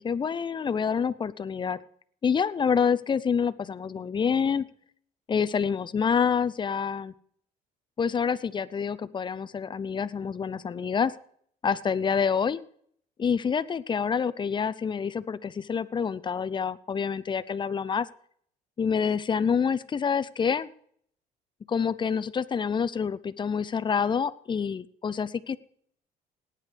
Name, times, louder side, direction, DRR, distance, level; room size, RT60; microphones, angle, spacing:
voice 1, 0.0-1.8 2.2-4.7 5.3-7.1 8.0-11.2 11.6-12.6 13.2-18.1 18.8-20.7 21.7-25.6, left 6 dB, 30° left, 15 dB, 0.5 m, -27 dB
18.5 x 9.9 x 3.4 m, 0.63 s
cardioid pair, 110°, 17 cm